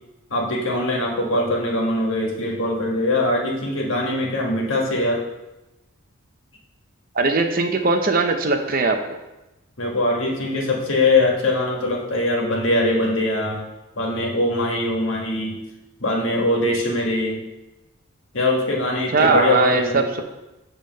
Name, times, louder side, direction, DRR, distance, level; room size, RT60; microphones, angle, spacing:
voice 1, 0.3-5.2 9.8-13.6 14.0-15.5 16.0-17.4 18.3-20.1, left 2 dB, 65° left, -1 dB, 1.6 m, -22 dB
voice 2, 7.2-9.0 19.1-20.2, right 3 dB, 40° right, 5 dB, 0.6 m, -19 dB
7.4 x 3.5 x 6.3 m, 0.98 s
head